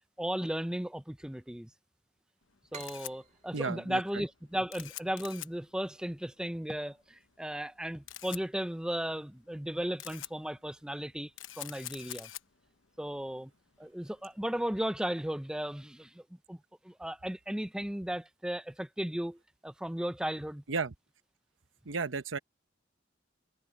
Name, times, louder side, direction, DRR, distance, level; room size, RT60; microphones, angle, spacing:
voice 1, 0.2-1.7 2.7-11.3 11.6-12.3 13.0-13.5 13.8-16.6 16.8-20.6, equal, 5° right, 0.5 m, -35 dB
Camera, 2.4-15.8, left 13 dB, 80° left, 1.0 m, -49 dB
sound 1, 2.7-6.1, right 5 dB, 40° right, 2.6 m, -53 dB
voice 2, 3.5-4.0 20.7-20.9 21.9-22.4, right 4 dB, 75° right, 0.9 m, -33 dB
head